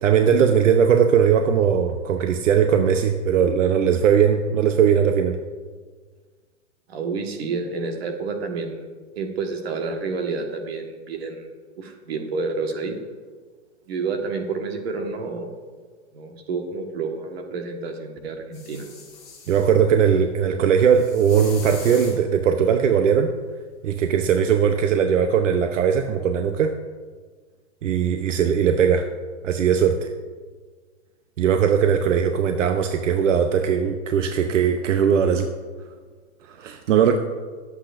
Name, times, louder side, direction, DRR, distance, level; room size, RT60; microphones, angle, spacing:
voice 1, 0.0-5.4 19.5-23.3 23.8-26.7 27.8-29.1 29.4-30.1 31.4-35.5 36.5-37.2, right 7 dB, 75° right, 6 dB, 0.9 m, -19 dB
voice 2, 6.9-8.9 9.1-11.5 11.8-13.0 13.9-15.5 16.1-18.8, right 4 dB, 55° right, 3 dB, 1.6 m, -29 dB
sound 1, 18.5-19.7 20.8-22.2 24.3-24.4, left 4 dB, 10° left, 2.8 m, -41 dB
21.5 x 8.2 x 2.6 m, 1.5 s
supercardioid pair, 180°, 37 cm